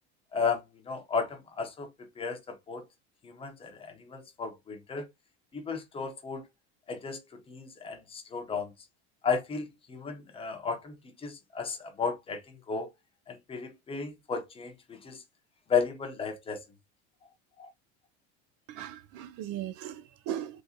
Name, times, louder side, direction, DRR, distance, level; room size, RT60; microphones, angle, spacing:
voice 1, 0.3-2.8 3.2-5.1 5.5-6.4 6.9-8.7 9.2-10.9 11.2-12.9 13.3-15.2 15.7-16.6 17.6-17.7, left 5 dB, 20° left, 0.7 m, -34 dB
voice 2, 18.7-20.6, right 11 dB, 60° right, 0.5 m, -38 dB
3.7 x 2.6 x 2.7 m
cardioid pair, 155°, 31 cm